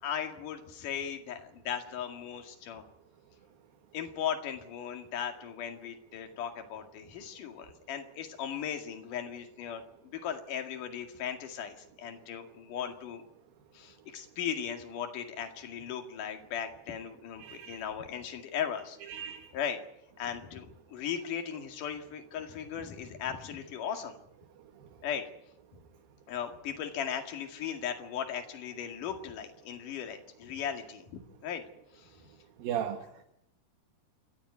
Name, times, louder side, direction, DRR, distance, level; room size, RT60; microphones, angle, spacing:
voice 1, 0.0-2.8 3.9-9.8 10.1-13.2 13.7-19.0 19.5-19.8 20.2-24.2 25.0-25.2 26.3-31.6 31.9-32.1, left 8 dB, 55° left, 5 dB, 3.4 m, -37 dB
voice 2, 17.4-17.8 19.1-19.5 32.6-33.0, right 9 dB, 65° right, 7 dB, 3.0 m, -35 dB
28.5 x 13.0 x 9.5 m, 0.80 s
omnidirectional pair, 4.6 m